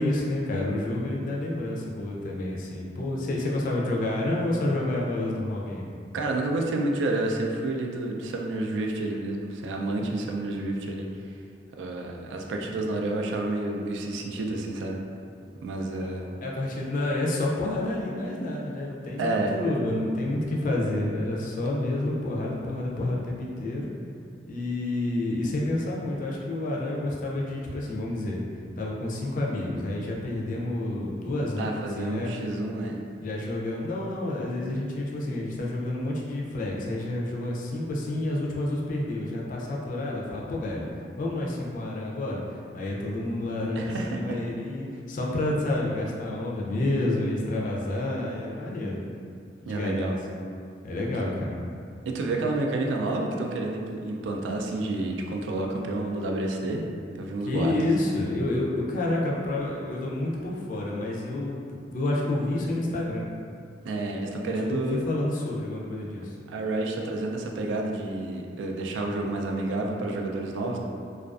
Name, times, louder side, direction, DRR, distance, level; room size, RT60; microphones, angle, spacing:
voice 1, 0.0-5.9 15.9-16.1 16.4-23.9 24.5-28.4 28.8-32.3 32.8-32.9 33.2-40.8 41.2-42.4 42.7-49.0 49.6-50.4 50.8-51.6 57.5-63.3 64.4-66.4, left 1 dB, 50° left, -3 dB, 0.4 m, -29 dB
voice 2, 6.1-11.1 11.8-15.0 15.6-16.3 19.2-19.6 31.6-33.0 43.8-44.4 49.7-50.1 52.1-56.8 57.1-57.7 63.8-65.1 66.5-70.8, right 2 dB, 85° right, 1 dB, 0.3 m, -29 dB
2.3 x 2.3 x 2.3 m, 2.3 s
head